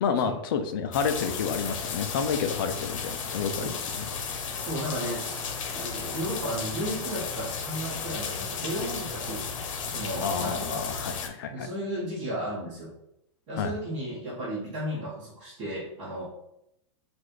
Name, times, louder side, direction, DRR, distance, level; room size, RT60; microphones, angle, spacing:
voice 1, 0.0-4.1 10.2-11.7 13.6-13.7, left 6 dB, 45° left, 8 dB, 0.5 m, -30 dB
sound 1, 0.9-11.3, left 5 dB, 80° left, 0.8 m, -34 dB
voice 2, 4.6-9.4 9.8-10.8 11.5-12.9 13.5-16.2, equal, 30° right, -10 dB, 1.4 m, -34 dB
5.8 x 2.6 x 3.1 m, 0.81 s
supercardioid pair, 175°, 16 cm